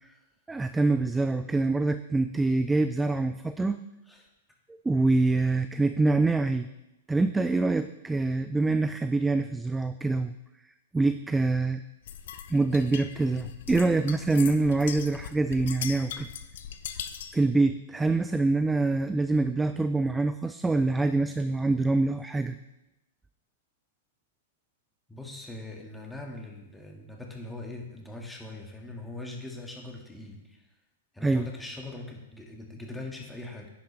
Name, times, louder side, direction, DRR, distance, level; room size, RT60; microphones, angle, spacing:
voice 1, 0.5-3.8 4.9-6.7 7.1-10.3 10.9-11.8 12.5-16.3 17.3-22.6 31.2-31.4, right 3 dB, 10° right, 10 dB, 0.3 m, -25 dB
sound 1, 12.1-17.4, left 9 dB, 65° left, 0.7 m, -40 dB
voice 2, 25.1-30.7 31.1-33.7, left 2 dB, 5° left, 0 dB, 1.8 m, -41 dB
10.0 x 8.4 x 3.3 m, 0.95 s
hypercardioid pair, 110°, 0 cm